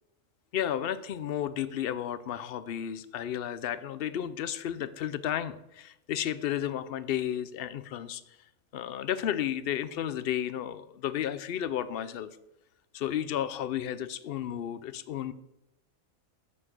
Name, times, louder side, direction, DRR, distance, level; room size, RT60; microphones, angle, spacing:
voice 1, 0.5-8.2 8.7-12.3 12.9-15.3, left 10 dB, 60° left, 15 dB, 0.6 m, -33 dB
7.5 x 6.2 x 7.6 m, 0.87 s
omnidirectional pair, 1.4 m